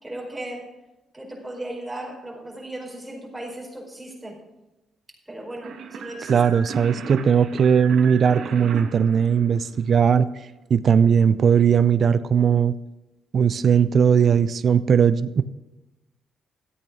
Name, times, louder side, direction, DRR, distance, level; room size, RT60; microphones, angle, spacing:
voice 1, 0.0-0.7 1.1-4.4 5.3-6.4, right 1 dB, 10° right, -2 dB, 4.8 m, -36 dB
sound 1, 5.6-10.1, right 6 dB, 70° right, 1.6 m, -37 dB
voice 2, 6.3-10.3 10.7-12.7 13.3-15.4, right 7 dB, 50° right, 14 dB, 0.6 m, -18 dB
14.0 x 8.6 x 6.2 m, 1.0 s
cardioid pair, 90°, 0 cm